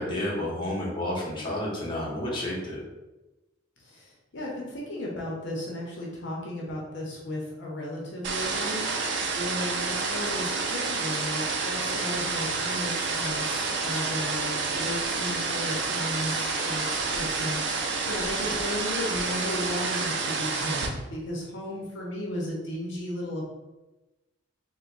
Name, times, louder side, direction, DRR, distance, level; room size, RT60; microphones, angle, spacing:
voice 1, 0.0-2.8, left 1 dB, 25° left, -5 dB, 0.9 m, -30 dB
voice 2, 3.8-8.9 9.3-23.5, left 1 dB, 65° left, -3 dB, 0.8 m, -35 dB
sound 1, 8.2-20.9, right 4 dB, 65° right, 0.5 m, -29 dB
3.3 x 2.2 x 3.9 m, 1.1 s
head